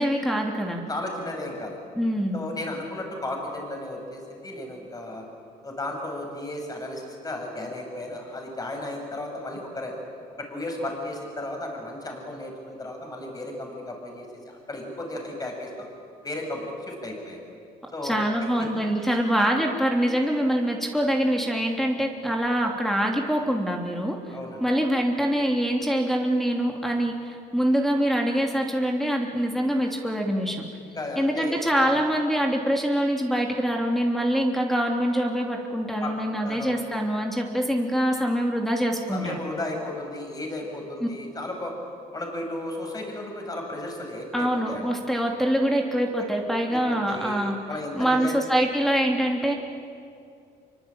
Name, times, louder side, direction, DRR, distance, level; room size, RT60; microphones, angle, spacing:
voice 1, 0.0-0.8 1.9-2.4 18.0-24.2 24.6-30.6 31.1-39.4 41.0-41.1 44.3-47.6 47.9-49.5, equal, ahead, 1 dB, 3.1 m, -24 dB
voice 2, 0.9-1.8 2.3-5.3 5.6-9.9 10.4-15.7 16.2-17.4 17.9-18.2 18.6-18.7 24.3-24.7 30.9-32.0 36.0-36.7 39.1-41.7 42.1-44.9 46.7-48.3, left 1 dB, 20° left, 2 dB, 7.1 m, -34 dB
26.5 x 24.0 x 9.0 m, 2.4 s
cardioid pair, 110°, 17 cm